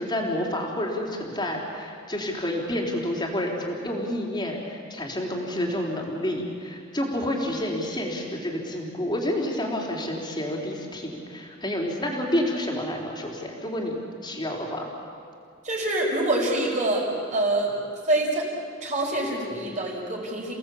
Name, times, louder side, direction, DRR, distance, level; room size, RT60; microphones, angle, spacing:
voice 1, 0.0-14.9, left 1 dB, 25° left, 0 dB, 3.9 m, -29 dB
voice 2, 15.6-17.8 18.1-18.5 18.8-20.5, right 1 dB, 40° right, -2 dB, 5.7 m, -25 dB
29.5 x 18.0 x 8.6 m, 2.4 s
head